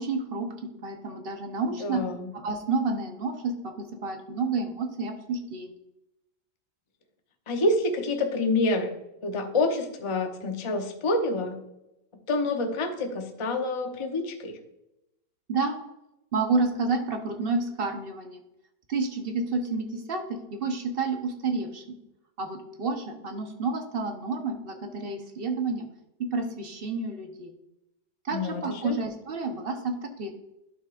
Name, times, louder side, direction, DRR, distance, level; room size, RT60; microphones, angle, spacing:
voice 1, 0.0-2.0 2.3-5.7 14.0-14.1 15.5-15.7 16.3-18.4 18.9-22.0 22.4-25.9 26.2-27.5 28.2-30.3, right 3 dB, 40° right, 4 dB, 0.9 m, -30 dB
voice 2, 1.8-2.3 7.5-8.9 9.2-11.6 12.3-14.6 28.3-29.0, left 2 dB, 35° left, 4 dB, 0.4 m, -27 dB
11.5 x 6.2 x 2.5 m, 0.89 s
omnidirectional pair, 2.0 m